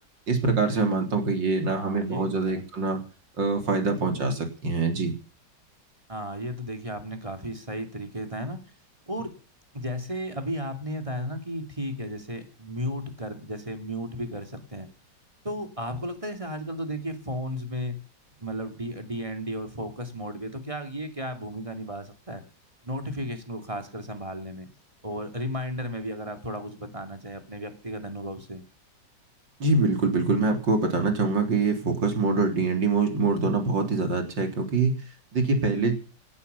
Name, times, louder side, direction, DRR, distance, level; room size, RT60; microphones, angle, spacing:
voice 1, 0.3-3.0 3.4-5.1 29.6-34.9 35.3-35.9, right 3 dB, 85° right, 5 dB, 4.2 m, -24 dB
voice 2, 1.7-2.6 6.1-8.6 9.1-9.3 9.7-14.9 15.4-18.0 18.4-22.4 22.8-24.7 25.0-28.6, equal, 15° right, 6 dB, 2.8 m, -34 dB
18.0 x 11.0 x 7.0 m, 0.37 s
omnidirectional pair, 1.9 m